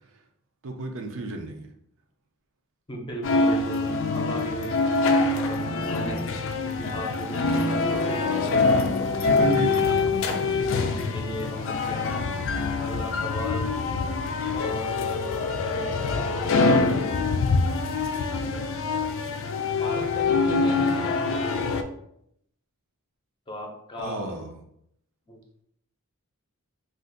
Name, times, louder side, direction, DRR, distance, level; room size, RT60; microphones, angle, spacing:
voice 1, 0.6-1.7 9.2-10.7 24.0-24.5, right 3 dB, 65° right, 3 dB, 0.5 m, -33 dB
voice 2, 2.9-8.2 9.0-9.3 9.6-9.8 10.5-12.2 12.8-13.7 14.5-17.0 18.3-18.7 19.7-21.8 23.5-24.4 25.3-25.4, equal, 20° left, -1 dB, 0.6 m, -37 dB
sound 1, 3.2-21.8, left 3 dB, 60° left, 0.4 m, -25 dB
2.5 x 2.5 x 3.8 m, 0.72 s
head